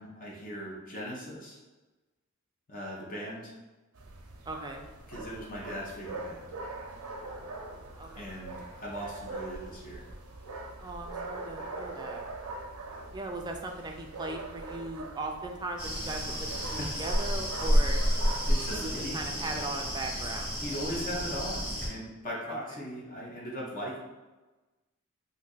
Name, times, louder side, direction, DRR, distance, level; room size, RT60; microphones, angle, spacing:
voice 1, 0.0-1.6 2.7-3.5 5.1-6.5 8.1-10.0 16.8-17.0 18.5-19.2 20.6-24.0, equal, 40° left, -4 dB, 0.6 m, -39 dB
sound 1, 3.9-19.2, right 2 dB, 90° right, 0.5 m, -42 dB
voice 2, 4.5-4.8 8.0-8.4 10.8-12.2 13.1-18.0 18.7-20.5 22.5-22.6, right 2 dB, 20° right, 3 dB, 0.3 m, -38 dB
sound 2, 15.8-21.9, equal, 15° left, 1.1 m, -30 dB
2.7 x 2.4 x 3.8 m, 1.2 s
head